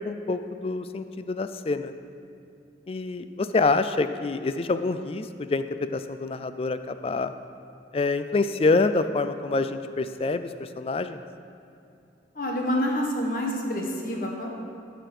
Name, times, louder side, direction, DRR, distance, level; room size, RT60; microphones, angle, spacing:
voice 1, 0.0-1.9 2.9-5.6 5.9-7.3 7.9-11.2, left 3 dB, 30° left, 11 dB, 0.3 m, -26 dB
voice 2, 12.3-14.5, equal, 50° left, 0 dB, 1.3 m, -27 dB
14.5 x 5.1 x 6.0 m, 2.6 s
head